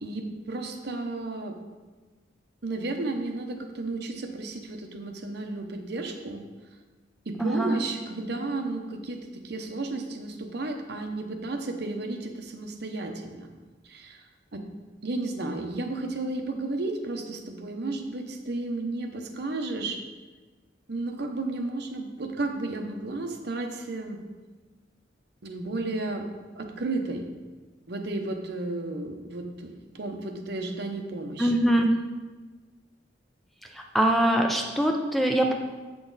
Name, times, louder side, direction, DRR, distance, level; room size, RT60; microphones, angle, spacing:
voice 1, 0.0-1.6 2.6-6.4 7.3-13.5 13.8-14.6 15.0-20.0 20.9-24.2 25.4-26.3 26.5-27.3 27.9-31.5, right 2 dB, 60° right, 4 dB, 0.8 m, -33 dB
voice 2, 7.4-7.8 31.4-31.9 33.7-35.5, right 1 dB, ahead, 2 dB, 0.5 m, -23 dB
7.7 x 6.1 x 3.9 m, 1.3 s
head